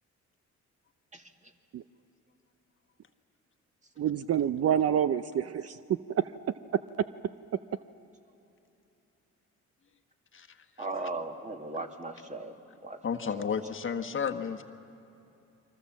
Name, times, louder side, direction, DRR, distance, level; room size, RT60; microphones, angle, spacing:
voice 1, 4.0-5.8 6.1-6.2, right 9 dB, 55° right, 13 dB, 0.7 m, -27 dB
voice 2, 10.8-12.5 12.8-13.0 13.4-13.5, right 2 dB, 25° right, 4 dB, 2.3 m, -37 dB
voice 3, 13.0-14.6, left 6 dB, 40° left, 5 dB, 1.4 m, -32 dB
29.0 x 24.0 x 7.4 m, 2.8 s
cardioid pair, 90°, 30 cm